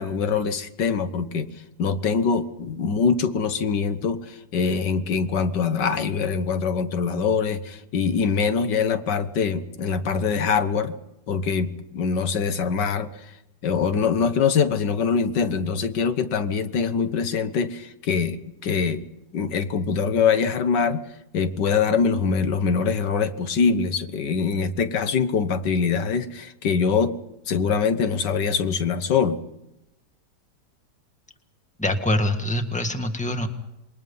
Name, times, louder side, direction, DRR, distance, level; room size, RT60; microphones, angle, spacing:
voice 1, 0.0-1.5 1.8-11.0 11.3-13.3 13.6-19.0 19.3-21.1 21.3-27.1 27.5-29.4, left 5 dB, 90° left, 10 dB, 1.9 m, -23 dB
voice 2, 31.8-33.5, left 1 dB, 5° left, 6 dB, 1.7 m, -24 dB
27.5 x 22.0 x 5.6 m, 0.89 s
omnidirectional pair, 1.8 m